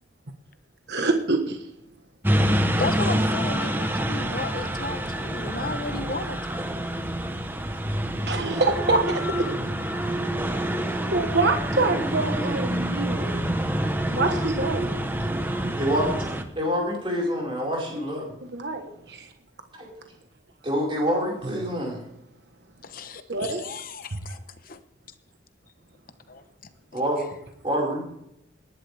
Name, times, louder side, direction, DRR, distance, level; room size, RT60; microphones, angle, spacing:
voice 1, 0.9-1.6 8.3-9.5 11.1-13.4 14.1-14.9 18.5-19.3 23.3-23.6, right 3 dB, 60° right, 5 dB, 1.3 m, -25 dB
sound 1, 2.2-16.4, right 1 dB, 10° right, 1.0 m, -27 dB
voice 2, 2.8-6.4 22.8-24.8 26.3-26.4, left 3 dB, 50° left, 10 dB, 1.0 m, -34 dB
voice 3, 15.8-16.1 16.5-18.3 19.7-19.9 20.6-22.0 26.9-27.2 27.6-28.1, equal, 30° right, -2 dB, 5.1 m, -26 dB
19.0 x 11.5 x 3.5 m, 0.76 s
head